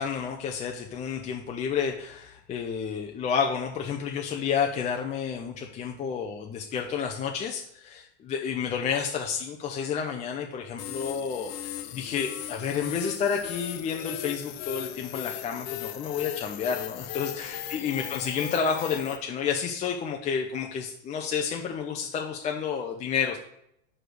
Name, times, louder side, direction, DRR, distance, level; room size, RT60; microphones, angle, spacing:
voice 1, 0.0-23.4, left 7 dB, 20° left, 2 dB, 0.4 m, -30 dB
sound 1, 10.8-19.2, left 11 dB, 55° left, 0.8 m, -37 dB
5.0 x 4.9 x 6.2 m, 0.74 s
supercardioid pair, 130°, 38 cm